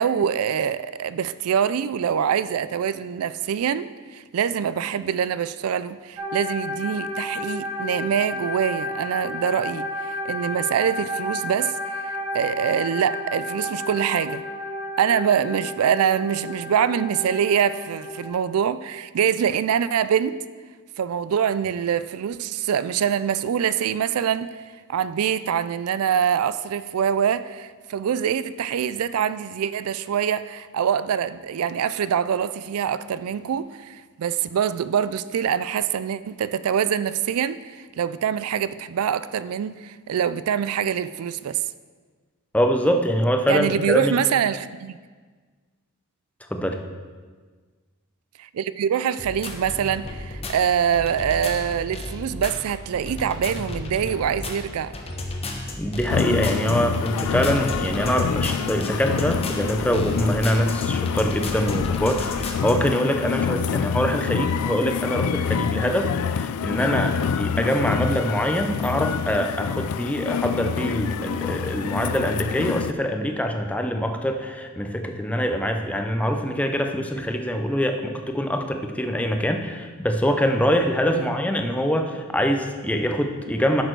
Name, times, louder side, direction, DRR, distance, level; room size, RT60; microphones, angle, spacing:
voice 1, 0.0-14.4 15.0-20.4 21.0-24.5 24.9-41.6 43.5-45.0 48.4-54.9 81.1-81.3, right 8 dB, 75° right, 15 dB, 0.4 m, -24 dB
sound 1, 6.2-18.3, left 1 dB, 30° right, 2.8 m, -32 dB
voice 2, 42.5-44.1 46.5-46.8 55.8-83.8, equal, 5° left, 4 dB, 0.7 m, -24 dB
sound 2, 49.2-62.7, left 2 dB, 30° left, 1.0 m, -33 dB
sound 3, 56.1-72.9, left 7 dB, 80° left, 0.3 m, -27 dB
11.0 x 6.6 x 4.6 m, 1.5 s
head